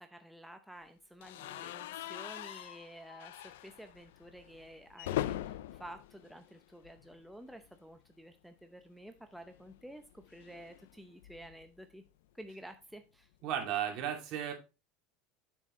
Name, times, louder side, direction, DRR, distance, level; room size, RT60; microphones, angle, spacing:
voice 1, 0.0-12.0 12.3-13.3, right 1 dB, ahead, 6 dB, 0.7 m, -51 dB
sound 1, 1.2-7.2 7.5-7.7 8.0-8.1 9.4-11.7, left 13 dB, 90° left, 0.4 m, -42 dB
voice 2, 13.4-14.5, right 9 dB, 55° right, 2 dB, 2.5 m, -34 dB
7.5 x 6.5 x 3.2 m, 0.29 s
supercardioid pair, 120°, 0 cm